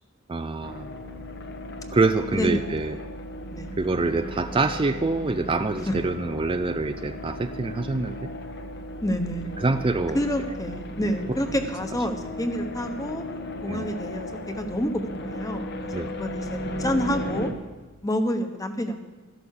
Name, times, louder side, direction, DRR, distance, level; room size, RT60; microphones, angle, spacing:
voice 1, 0.3-0.9 1.9-3.0 3.8-8.2 9.6-10.2 11.0-11.1 13.7-13.9 15.9-16.1, right 3 dB, 25° right, 8 dB, 0.4 m, -25 dB
sound 1, 0.6-17.5, left 1 dB, 55° left, 1.3 m, -36 dB
voice 2, 2.3-2.7 3.5-3.8 5.9-6.0 9.0-9.5 10.1-13.2 13.6-15.7 16.1-17.5 18.0-19.0, equal, 15° left, 7 dB, 1.1 m, -28 dB
13.0 x 11.5 x 6.6 m, 1.2 s
head